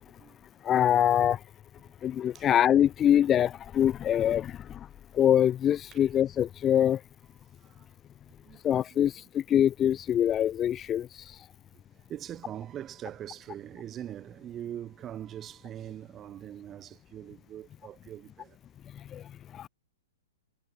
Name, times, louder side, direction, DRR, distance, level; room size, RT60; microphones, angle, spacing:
voice 1, 0.6-1.4 2.0-4.5 5.2-7.0 8.6-9.1 9.5-11.1 19.6-19.7, left 10 dB, 20° left, 1.0 m, -24 dB
voice 2, 8.4-9.3 12.1-18.6, right 11 dB, 20° right, 5.6 m, -42 dB
figure-of-eight pair, 110°, 0 cm